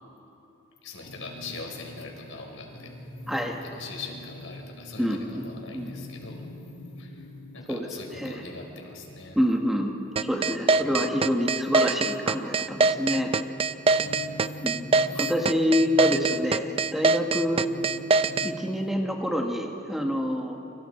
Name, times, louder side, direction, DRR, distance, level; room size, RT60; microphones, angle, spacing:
voice 1, 0.8-2.9 3.6-6.4 7.0-7.3 7.5-9.4 10.8-10.9 14.0-14.3 15.1-15.3, left 4 dB, 75° left, 2 dB, 4.3 m, -42 dB
sound 1, 1.0-19.1, left 1 dB, 60° left, 1.9 m, -44 dB
voice 2, 3.3-3.6 5.0-5.5 5.7-5.9 7.7-7.9 8.2-8.4 9.3-9.9 10.2-13.3 14.6-17.6 18.4-20.6, equal, ahead, 1 dB, 1.5 m, -27 dB
sound 2, 10.2-18.5, right 3 dB, 30° right, 0.5 m, -22 dB
28.0 x 25.5 x 4.4 m, 2.9 s
head